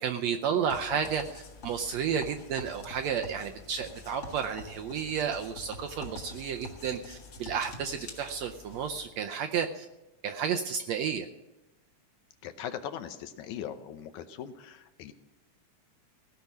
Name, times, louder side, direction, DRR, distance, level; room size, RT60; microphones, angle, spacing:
voice 1, 0.0-9.9 10.2-11.3, right 7 dB, 75° right, 5 dB, 1.6 m, -32 dB
sound 1, 0.7-9.1, left 2 dB, 45° left, 2.1 m, -46 dB
voice 2, 12.4-15.1, left 9 dB, 75° left, 9 dB, 2.1 m, -40 dB
16.5 x 5.9 x 9.4 m, 1.0 s
omnidirectional pair, 3.7 m